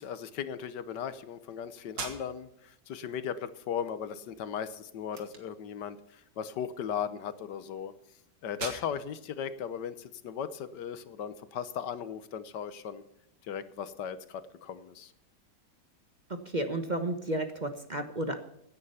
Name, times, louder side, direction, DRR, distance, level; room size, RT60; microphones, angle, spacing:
voice 1, 0.0-7.9 8.4-13.0 13.5-15.1, left 8 dB, 75° left, 13 dB, 1.5 m, -37 dB
sound 1, 1.9-10.8, right 4 dB, 90° right, 2.8 m, -47 dB
voice 2, 16.5-18.4, right 1 dB, 30° right, 7 dB, 1.1 m, -32 dB
16.0 x 10.0 x 5.6 m, 0.78 s
omnidirectional pair, 1.9 m